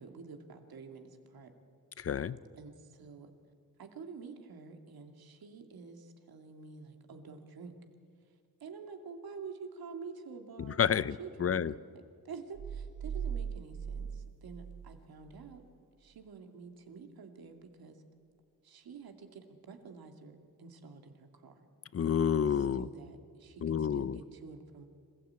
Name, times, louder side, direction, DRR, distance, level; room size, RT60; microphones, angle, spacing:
voice 1, 0.0-1.5 2.5-3.3 3.8-7.8 8.6-11.6 11.9-15.6 16.0-18.0 18.6-21.7 22.8-24.9, right 5 dB, 75° right, 5 dB, 2.3 m, -48 dB
voice 2, 2.0-2.4 10.6-11.7 21.9-22.9 23.6-24.2, left 8 dB, 40° left, 17 dB, 0.6 m, -30 dB
sound 1, 12.5-15.5, right 7 dB, 60° right, 1.3 m, -40 dB
26.5 x 16.5 x 8.7 m, 2.3 s
cardioid pair, 105°, 36 cm